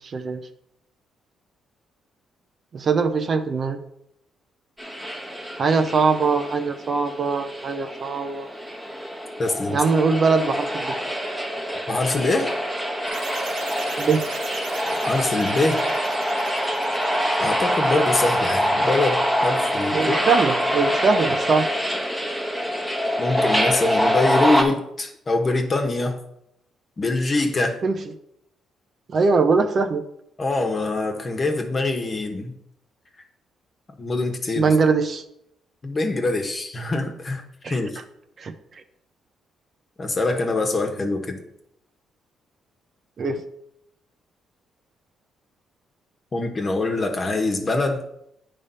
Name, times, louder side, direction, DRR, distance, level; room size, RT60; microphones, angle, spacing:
voice 1, 2.7-3.8 5.6-8.5 9.7-10.9 14.0-14.2 19.9-21.7 27.8-28.0 29.1-30.0 34.6-35.2 37.6-37.7 38.4-38.5 43.2-43.4, right 4 dB, 45° right, 7 dB, 0.7 m, -21 dB
sound 1, 4.8-24.6, equal, 5° right, 1.2 m, -25 dB
voice 2, 9.4-9.8 11.9-12.5 14.9-15.8 17.4-20.2 23.2-26.2 27.0-27.8 30.4-32.5 34.0-34.7 35.8-37.9 40.0-41.4 46.3-48.0, left 2 dB, 35° left, 3 dB, 1.2 m, -24 dB
sound 2, 13.1-18.5, right 5 dB, 85° right, 1.1 m, -39 dB
8.7 x 3.4 x 5.5 m, 0.77 s
cardioid pair, 90°, 0 cm